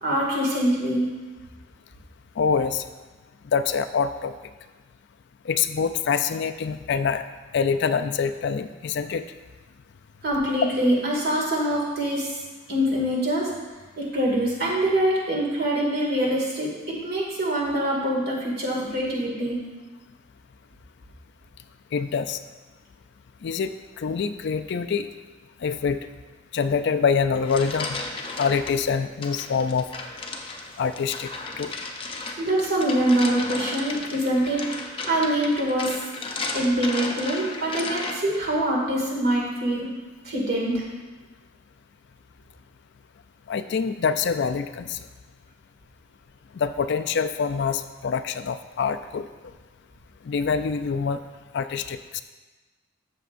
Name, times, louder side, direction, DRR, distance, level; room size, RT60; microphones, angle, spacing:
voice 1, 0.0-1.1 10.2-12.4 12.7-13.5 14.0-19.6 32.4-34.6 35.0-35.9 36.5-39.9 40.2-40.8, right 1 dB, 50° right, -3 dB, 2.2 m, -24 dB
voice 2, 2.4-2.8 3.5-4.3 5.4-7.3 7.5-9.2 21.9-22.4 23.4-25.1 25.6-26.0 26.5-28.0 28.4-29.9 30.8-31.3 31.6-31.7 43.5-45.0 46.5-49.3 50.2-51.2 51.5-52.2, left 6 dB, 55° left, 9 dB, 0.4 m, -25 dB
sound 1, 27.2-28.7 29.2-38.4, left 3 dB, 25° left, 0.7 m, -34 dB
13.5 x 7.0 x 2.5 m, 1.3 s
head